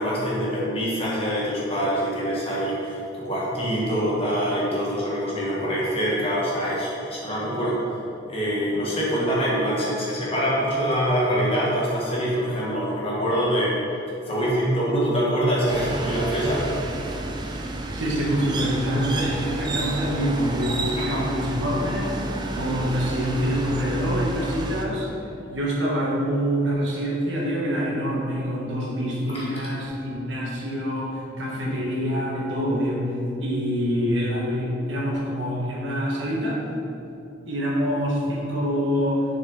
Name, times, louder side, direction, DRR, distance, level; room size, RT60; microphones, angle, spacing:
voice 1, 0.0-7.8 8.3-13.7 14.3-16.6 29.3-29.4, equal, 30° left, -6 dB, 1.5 m, -24 dB
sound 1, 15.7-24.9, right 2 dB, 25° right, 0.4 m, -30 dB
voice 2, 17.9-22.1 22.5-25.1 25.5-33.0 33.4-36.6 37.4-39.3, equal, 70° right, -3 dB, 1.2 m, -26 dB
6.4 x 4.1 x 3.9 m, 2.7 s
head